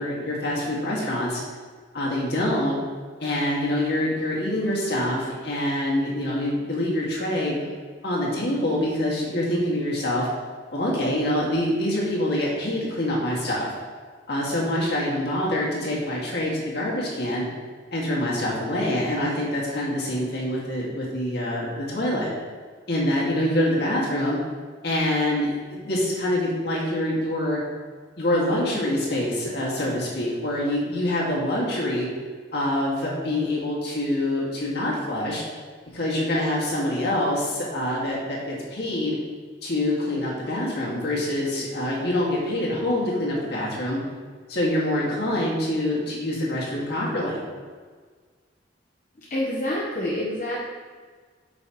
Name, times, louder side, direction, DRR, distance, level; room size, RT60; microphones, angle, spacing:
voice 1, 0.0-1.4 1.9-2.8 3.2-7.6 8.0-10.3 10.7-13.7 14.3-17.4 17.9-22.3 22.9-24.4 24.8-27.6 28.2-32.1 32.5-35.4 35.9-39.2 39.6-44.0 44.5-47.4, left 1 dB, 60° left, -4 dB, 1.9 m, -25 dB
voice 2, 49.3-50.6, left 1 dB, 40° left, -6 dB, 1.0 m, -27 dB
8.3 x 6.1 x 3.0 m, 1.5 s
head